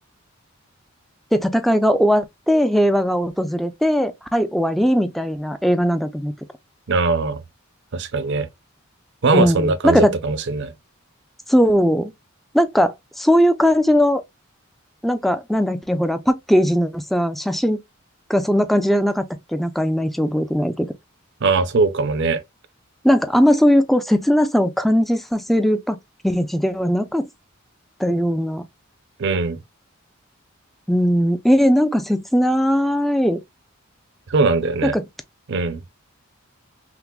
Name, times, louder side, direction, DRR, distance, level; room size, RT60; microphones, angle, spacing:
voice 1, 1.3-6.3 9.3-10.2 11.5-12.1 12.5-14.2 15.0-17.8 18.3-19.2 19.5-20.9 23.0-26.0 26.2-27.3 28.0-28.6 30.9-33.4 34.8-35.0, equal, ahead, 0.3 m, -19 dB
voice 2, 6.9-7.4 7.9-8.5 9.2-10.7 21.4-22.4 29.2-29.6 34.3-34.9 35.5-35.8, right 3 dB, 55° right, 0.5 m, -20 dB
5.8 x 2.0 x 2.2 m
head